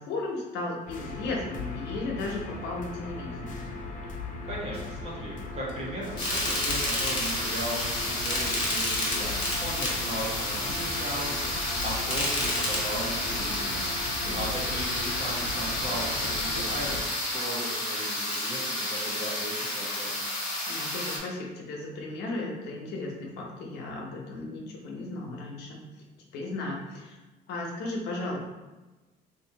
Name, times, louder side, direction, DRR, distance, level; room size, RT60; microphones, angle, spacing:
voice 1, 0.0-3.7 14.2-14.4 20.7-25.9 26.3-27.2 27.5-28.4, left 2 dB, 85° left, -1 dB, 0.8 m, -35 dB
sound 1, 0.9-17.0, left 3 dB, 50° left, 0.5 m, -37 dB
voice 2, 4.4-20.2, right 1 dB, 40° right, -5 dB, 1.3 m, -37 dB
sound 2, 6.2-21.2, left 1 dB, 25° left, 1.3 m, -30 dB
2.8 x 2.6 x 3.9 m, 1.2 s
cardioid pair, 110°, 17 cm